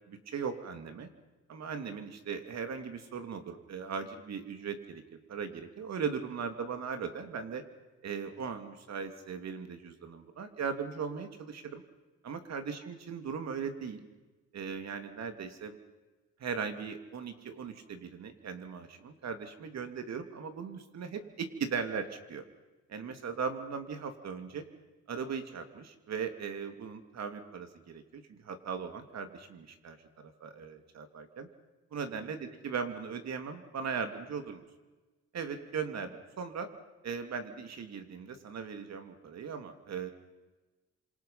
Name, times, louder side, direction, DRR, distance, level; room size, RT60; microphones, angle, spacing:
voice 1, 0.1-1.1 1.5-5.0 5.3-7.6 8.0-11.8 12.3-14.0 14.5-15.8 16.4-22.4 22.9-24.6 25.1-31.5 31.9-34.6 35.3-36.7 37.0-40.1, right 6 dB, 60° right, 7 dB, 3.1 m, -38 dB
29.0 x 26.5 x 5.9 m, 1.2 s
cardioid pair, 90°, 30 cm